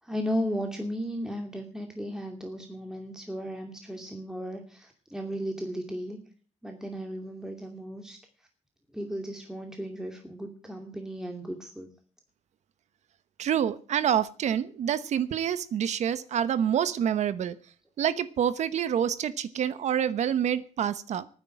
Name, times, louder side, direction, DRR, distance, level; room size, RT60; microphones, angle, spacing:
voice 1, 0.0-6.2 6.6-8.5 8.9-11.9, equal, 5° right, 3 dB, 2.5 m, -35 dB
voice 2, 13.4-17.6 18.0-21.3, right 9 dB, 75° right, 15 dB, 0.9 m, -27 dB
13.0 x 9.7 x 8.8 m, 0.42 s
cardioid pair, 115°, 12 cm